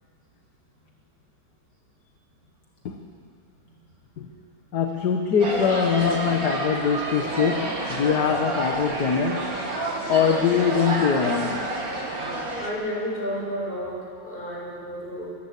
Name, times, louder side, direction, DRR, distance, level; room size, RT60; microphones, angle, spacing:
voice 1, 4.7-9.5 10.1-11.6, left 6 dB, 55° left, 4 dB, 1.7 m, -23 dB
sound 1, 5.4-12.7, right 2 dB, 45° right, 2.6 m, -29 dB
voice 2, 12.6-15.4, equal, 25° left, -4 dB, 6.8 m, -32 dB
22.0 x 18.5 x 8.4 m, 2.4 s
omnidirectional pair, 2.2 m